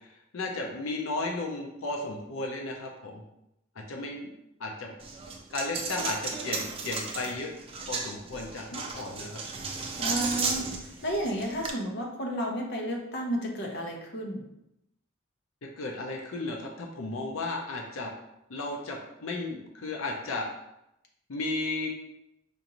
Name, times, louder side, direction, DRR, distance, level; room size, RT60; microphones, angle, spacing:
voice 1, 0.3-3.2 3.8-4.3 4.6-4.9 5.5-7.5 7.9-9.4 9.7-9.9 15.8-18.1 18.5-20.5 21.3-21.9, left 2 dB, 85° left, 1 dB, 0.6 m, -34 dB
Coin (dropping), 5.0-11.7, right 4 dB, 30° right, 0.4 m, -34 dB
voice 2, 10.0-10.6 11.0-14.4, equal, 55° left, 0 dB, 0.8 m, -32 dB
5.2 x 2.5 x 2.9 m, 0.85 s
head